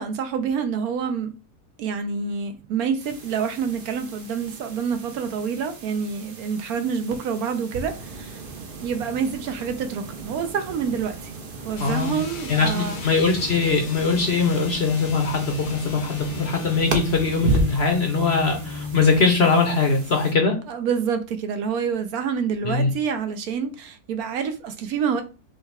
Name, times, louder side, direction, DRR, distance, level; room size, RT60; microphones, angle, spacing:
voice 1, 0.0-1.3 1.8-8.4 8.8-11.3 11.6-13.0 20.7-25.2, right 6 dB, 70° right, 1.0 m, -27 dB
sound 1, 3.0-20.3, right 3 dB, 45° right, 0.8 m, -34 dB
sound 2, 11.7-19.3, left 3 dB, 80° left, 1.4 m, -36 dB
voice 2, 11.8-12.2 12.5-20.6 22.6-22.9, left 4 dB, 50° left, 0.8 m, -21 dB
5.5 x 2.2 x 3.3 m
omnidirectional pair, 1.7 m